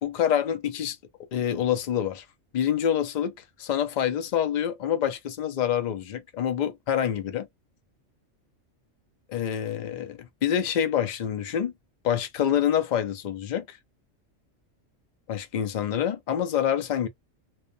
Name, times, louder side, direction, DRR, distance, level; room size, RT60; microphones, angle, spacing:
voice 1, 0.0-1.0 1.3-2.2 2.5-7.5 9.3-11.7 12.0-13.8 15.3-17.1, left 9 dB, 70° left, 0.4 m, -26 dB
2.4 x 2.1 x 2.5 m
omnidirectional pair, 1.3 m